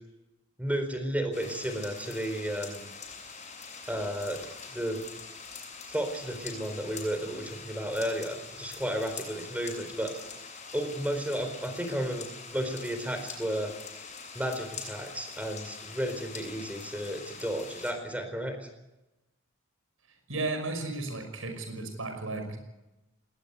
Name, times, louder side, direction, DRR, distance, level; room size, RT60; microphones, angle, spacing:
voice 1, 0.6-2.9 3.9-4.4 4.7-5.0 5.8-10.1 10.7-13.7 14.3-18.6, right 1 dB, 5° right, 7 dB, 4.2 m, -33 dB
sound 1, 1.3-17.9, left 5 dB, 35° left, 7.8 m, -44 dB
voice 2, 20.3-22.6, right 2 dB, 85° right, 5 dB, 5.7 m, -34 dB
20.5 x 19.0 x 8.3 m, 0.98 s
head